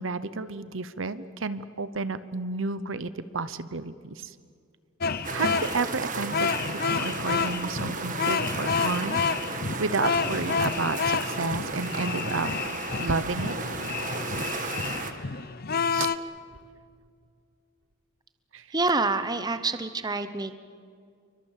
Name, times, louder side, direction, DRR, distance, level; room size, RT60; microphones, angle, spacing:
voice 1, 0.0-4.3 5.3-6.5 6.8-12.5 13.0-13.5 15.1-15.3 15.9-16.2 18.5-18.7, right 3 dB, 65° right, 14 dB, 0.9 m, -31 dB
sound 1, 5.0-16.2, left 5 dB, 45° left, 0.8 m, -29 dB
sound 2, 5.2-15.1, right 4 dB, 40° right, 1.7 m, -34 dB
voice 2, 18.7-20.5, right 3 dB, 20° right, 11 dB, 0.9 m, -27 dB
28.5 x 24.0 x 7.4 m, 2.2 s
head